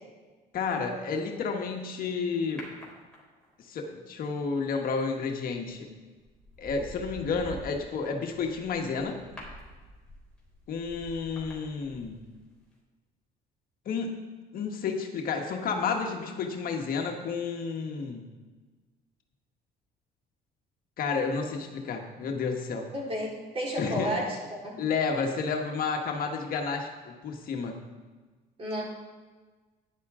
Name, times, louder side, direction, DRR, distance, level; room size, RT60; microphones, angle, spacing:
voice 1, 0.5-2.7 3.7-5.9 6.6-9.2 10.7-12.2 13.8-14.2 14.5-18.3 21.0-22.9 23.8-24.1 24.8-27.8, left 5 dB, 60° left, 2 dB, 1.4 m, -31 dB
sound 1, 2.6-3.6 5.5-5.8 6.2-12.4 12.7-12.8, equal, 5° left, 3.8 m, -47 dB
voice 2, 22.9-24.8 28.6-28.8, equal, 35° right, -4 dB, 4.2 m, -32 dB
12.5 x 10.5 x 3.7 m, 1.3 s
cardioid pair, 110°, 17 cm